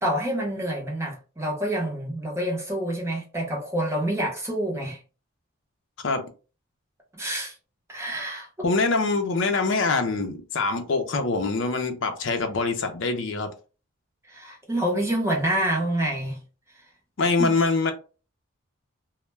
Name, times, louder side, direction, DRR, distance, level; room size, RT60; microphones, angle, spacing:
voice 1, 0.0-5.0 7.1-7.5 7.9-8.5 14.3-16.4 17.4-17.5, right 1 dB, 10° right, 0.6 m, -27 dB
voice 2, 8.6-13.5 17.2-17.9, left 3 dB, 60° left, 0.5 m, -24 dB
2.1 x 2.1 x 3.1 m
head